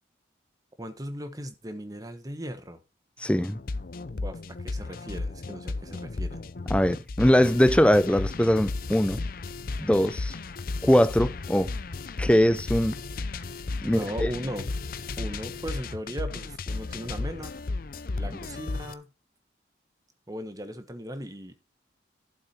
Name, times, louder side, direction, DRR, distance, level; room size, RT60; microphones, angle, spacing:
voice 1, 0.8-2.8 4.1-6.4 13.8-14.7 15.2-17.5 18.1-19.1 20.3-21.5, equal, 20° right, 1.3 m, -37 dB
voice 2, 3.2-3.6 6.7-9.2 9.8-10.3 10.8-11.7 12.2-12.9 13.8-14.0, equal, 5° left, 0.5 m, -21 dB
sound 1, 3.4-18.9, left 3 dB, 50° left, 0.6 m, -34 dB
12.0 x 7.3 x 4.3 m
head